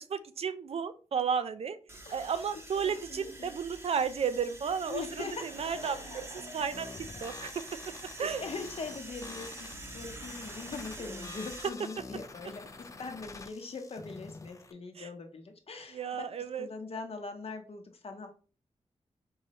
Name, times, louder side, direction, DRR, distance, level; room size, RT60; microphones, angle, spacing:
voice 1, 0.0-1.8 2.1-7.9 8.2-8.4 15.0-15.1 15.9-16.7, right 6 dB, 60° right, 12 dB, 0.4 m, -33 dB
sound 1, 1.9-11.7, right 2 dB, 20° right, 0.7 m, -46 dB
voice 2, 2.0-2.4 2.8-3.5 4.9-5.4 5.8-6.1 8.4-16.3 16.6-18.4, left 4 dB, 60° left, 5 dB, 0.8 m, -42 dB
Laughter / Crowd, 4.9-8.7, left 3 dB, 80° left, 1.1 m, -52 dB
sound 2, 6.7-14.7, left 3 dB, 30° left, 0.4 m, -48 dB
4.6 x 3.0 x 2.8 m, 0.37 s
wide cardioid pair, 140°, 12 cm